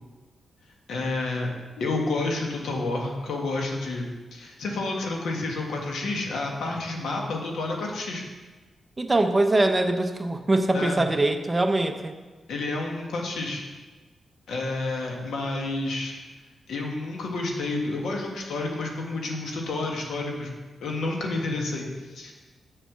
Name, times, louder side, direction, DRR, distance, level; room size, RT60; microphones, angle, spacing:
voice 1, 0.9-1.5 1.8-4.0 4.3-8.2 10.7-11.0 12.5-13.6 14.5-16.1 16.7-20.5 20.8-22.3, left 2 dB, 85° left, 0 dB, 1.6 m, -30 dB
voice 2, 9.0-12.1, right 2 dB, 25° right, 7 dB, 0.7 m, -23 dB
6.9 x 5.6 x 7.2 m, 1.3 s
cardioid pair, 90°, 0 cm